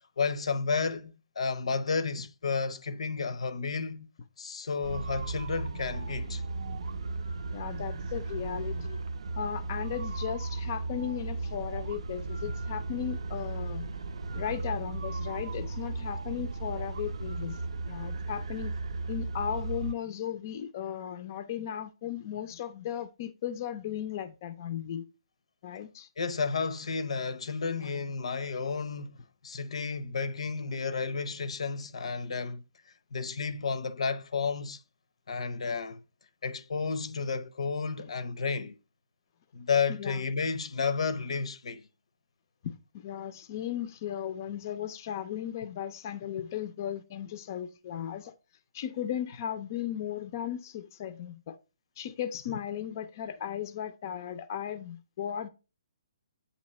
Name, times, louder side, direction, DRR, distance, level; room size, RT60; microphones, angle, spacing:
voice 1, 0.2-4.1 4.4-6.4 26.2-29.2 29.4-32.6 33.1-34.8 35.3-36.0 36.4-38.8 39.5-41.9, left 5 dB, 75° left, 0.6 m, -32 dB
sound 1, 4.8-19.9, right 3 dB, 70° right, 0.5 m, -35 dB
voice 2, 7.5-9.0 9.4-13.9 14.3-17.6 17.8-18.7 19.1-25.1 25.6-26.1 40.0-40.2 42.6-48.3 48.7-51.6 52.0-55.5, left 9 dB, 30° left, 0.4 m, -36 dB
8.4 x 2.8 x 4.1 m
hypercardioid pair, 170°, 3 cm